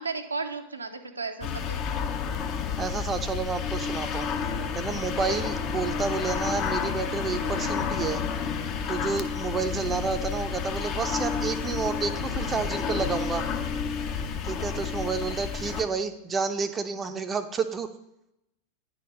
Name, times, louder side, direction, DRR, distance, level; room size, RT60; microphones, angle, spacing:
voice 1, 0.0-1.8 4.9-5.2 9.0-9.1 14.2-14.4, right 4 dB, 80° right, 5 dB, 0.6 m, -35 dB
sound 1, 1.4-15.8, left 6 dB, 35° left, 0.7 m, -30 dB
voice 2, 2.8-8.2 8.9-13.5 14.4-17.9, right 5 dB, 20° right, 8 dB, 0.5 m, -30 dB
9.8 x 4.3 x 5.2 m, 0.86 s
figure-of-eight pair, 90°, 0 cm